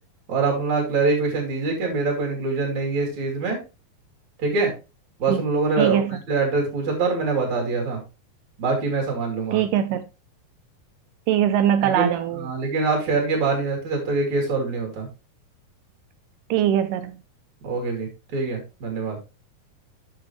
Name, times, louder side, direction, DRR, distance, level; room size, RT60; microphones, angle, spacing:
voice 1, 0.3-3.6 4.4-4.7 5.2-8.0 8.6-9.6 11.8-12.1 12.4-15.1 17.6-19.2, right 4 dB, 55° right, 3.9 m, -24 dB
voice 2, 5.8-6.1 9.5-10.0 11.3-12.5 16.5-17.2, right 10 dB, 80° right, 2.1 m, -21 dB
9.4 x 6.4 x 3.2 m
omnidirectional pair, 4.0 m